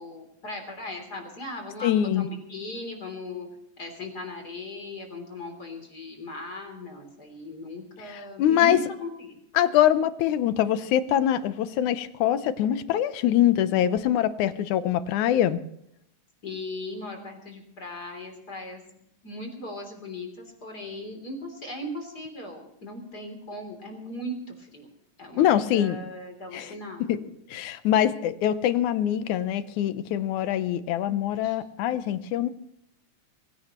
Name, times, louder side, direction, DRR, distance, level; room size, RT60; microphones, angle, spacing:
voice 1, 0.0-3.5 3.8-9.4 16.4-18.8 19.2-24.9 25.2-27.3 31.4-31.6, left 2 dB, 30° left, 3 dB, 3.7 m, -38 dB
voice 2, 1.8-2.3 8.1-8.8 9.6-15.6 25.4-26.0 26.5-26.7 27.1-27.2 27.5-32.5, left 11 dB, 80° left, 12 dB, 2.3 m, -24 dB
24.0 x 16.5 x 3.1 m, 0.76 s
omnidirectional pair, 3.5 m